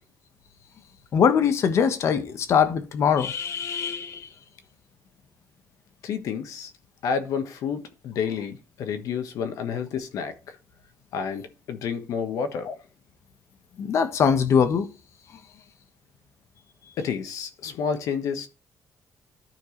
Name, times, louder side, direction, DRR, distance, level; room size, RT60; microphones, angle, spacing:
voice 1, 1.1-4.3 12.7-12.8 13.8-14.8, left 7 dB, 55° left, 1.3 m, -22 dB
voice 2, 6.0-6.7 7.0-10.6 11.1-12.7 17.0-18.5, left 6 dB, 75° left, 1.3 m, -30 dB
13.5 x 4.5 x 3.2 m
cardioid pair, 120°, 6 cm